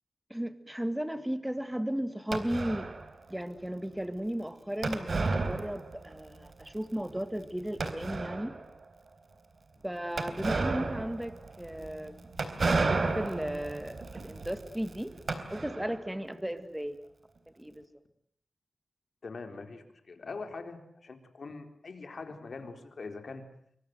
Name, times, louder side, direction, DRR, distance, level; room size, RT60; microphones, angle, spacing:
voice 1, 0.3-2.9 3.3-8.5 9.8-12.2 12.6-15.1 15.5-17.0 17.6-17.9, equal, 5° right, 10 dB, 2.1 m, -35 dB
sound 1, 2.3-3.1 4.8-6.2 6.5-6.6 7.1-7.2 7.8-8.6 10.2-16.0, right 3 dB, 55° right, 3.8 m, -32 dB
voice 2, 19.2-23.4, left 4 dB, 65° left, 6 dB, 4.1 m, -43 dB
27.5 x 24.5 x 8.0 m, 0.67 s
wide cardioid pair, 100°, 0 cm